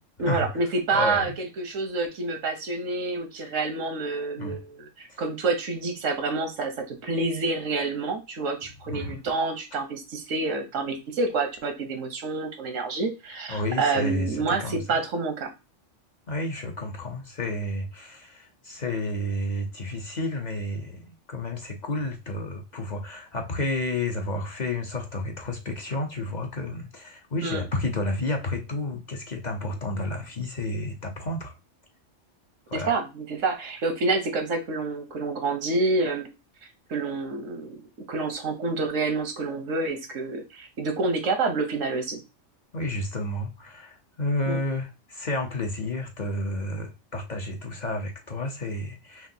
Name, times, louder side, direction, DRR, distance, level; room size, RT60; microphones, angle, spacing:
voice 1, 0.2-15.5 27.4-27.6 32.7-36.3 36.9-37.8 38.1-42.2 44.5-44.6, right 3 dB, 90° right, 1.3 m, -28 dB
voice 2, 0.9-1.4 4.4-4.6 5.1-5.2 8.9-9.2 13.5-15.0 16.3-31.5 32.7-32.9 42.7-49.3, left 2 dB, 45° left, 0.7 m, -31 dB
5.8 x 2.5 x 2.7 m
omnidirectional pair, 1.3 m